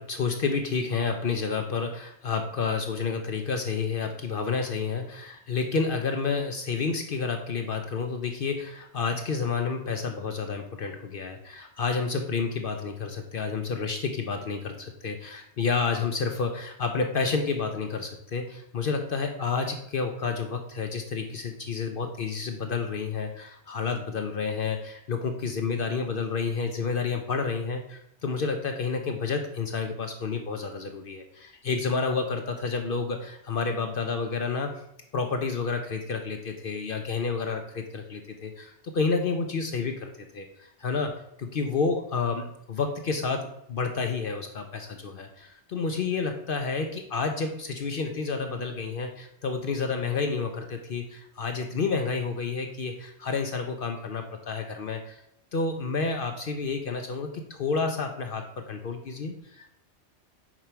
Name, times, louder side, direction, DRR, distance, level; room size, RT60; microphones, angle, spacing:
voice 1, 0.0-34.8 35.1-55.2 55.5-59.8, left 4 dB, 55° left, 5 dB, 0.7 m, -30 dB
5.0 x 4.5 x 5.6 m, 0.76 s
omnidirectional pair, 1.3 m